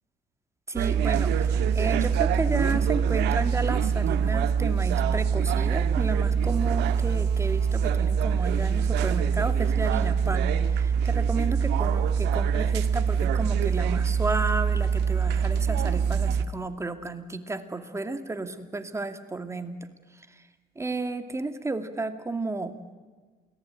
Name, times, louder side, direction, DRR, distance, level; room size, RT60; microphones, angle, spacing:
voice 1, 0.7-19.7 20.2-20.4 20.8-22.9, right 3 dB, 15° right, 8 dB, 2.3 m, -32 dB
sound 1, 0.8-16.5, right 7 dB, 85° right, 1.6 m, -24 dB
28.5 x 19.0 x 9.0 m, 1.4 s
cardioid pair, 110°, 17 cm